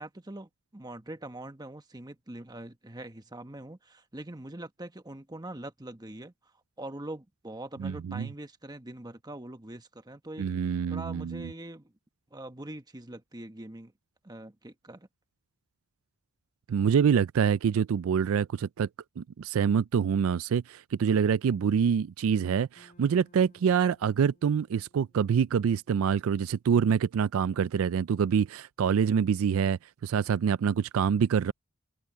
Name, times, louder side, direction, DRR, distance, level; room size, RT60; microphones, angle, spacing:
voice 1, 0.0-6.3 6.8-10.5 10.9-11.9 12.3-13.9 14.2-15.1, right 1 dB, 20° right, 1.3 m, -43 dB
voice 2, 7.8-8.3 10.4-11.5 16.7-18.9 19.2-31.5, right 7 dB, 70° right, 0.3 m, -26 dB
sound 1, 22.7-27.1, equal, 35° left, 6.5 m, -64 dB
head